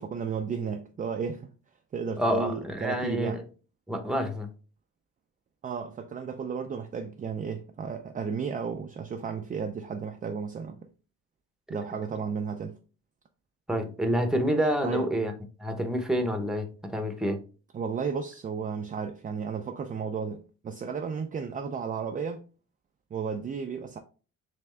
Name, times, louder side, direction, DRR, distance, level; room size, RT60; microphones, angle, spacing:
voice 1, 0.0-1.5 1.9-3.4 5.6-10.9 11.7-12.8 14.8-15.1 17.7-22.4 23.1-24.0, right 6 dB, 30° right, 0.4 m, -33 dB
voice 2, 2.2-3.4 3.9-4.5 13.7-15.3 15.6-17.4, equal, ahead, 0.8 m, -28 dB
3.5 x 3.4 x 3.2 m
cardioid pair, 90°, 30 cm